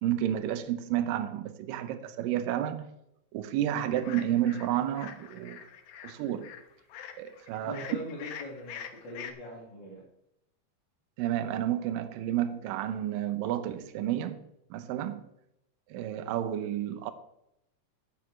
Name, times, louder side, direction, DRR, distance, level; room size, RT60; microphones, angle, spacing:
voice 1, 0.0-2.9 3.3-5.6 6.0-6.5 7.2-7.8 11.2-14.4 14.7-15.2 15.9-17.1, right 11 dB, 85° right, 1.9 m, -31 dB
sound 1, 3.9-9.3, left 8 dB, 75° left, 2.0 m, -45 dB
voice 2, 7.6-10.0, equal, 40° left, 1.8 m, -41 dB
15.5 x 9.9 x 3.2 m
omnidirectional pair, 5.0 m